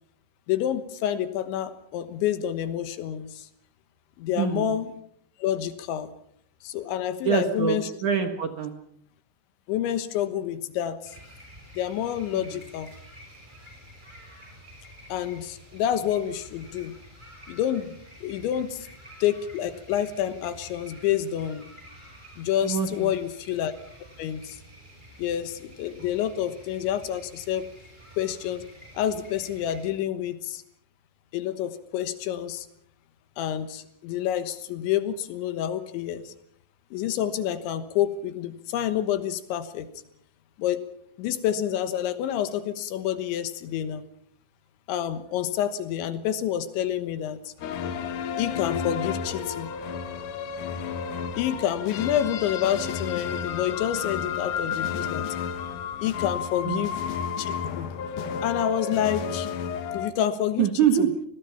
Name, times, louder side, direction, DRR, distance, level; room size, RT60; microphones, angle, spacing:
voice 1, 0.5-3.5 4.2-4.9 5.4-6.1 6.6-7.9 9.7-11.1 11.8-12.9 15.1-16.9 17.5-18.9 19.2-21.7 22.4-23.7 24.2-24.6 25.2-27.7 28.2-28.6 29.0-30.6 31.3-32.7 33.4-36.3 36.9-39.9 40.6-40.8 41.2-44.0 44.9-47.5 48.4-49.7 51.4-55.3 56.0-56.9 57.4-57.9 58.4-59.5 59.9-60.7 61.0-61.1, left 10 dB, 85° left, 11 dB, 3.6 m, -28 dB
voice 2, 4.4-4.8 7.2-8.7 12.3-12.6 22.6-23.1 56.6-56.8 60.6-61.1, right 8 dB, 65° right, 6 dB, 2.1 m, -25 dB
sound 1, 11.0-29.9, equal, 10° right, 6.4 m, -49 dB
sound 2, 47.6-60.1, left 7 dB, 65° left, 2.2 m, -32 dB
sound 3, 47.6-57.1, left 2 dB, 45° left, 8.4 m, -50 dB
27.0 x 20.0 x 5.8 m, 0.66 s
omnidirectional pair, 5.2 m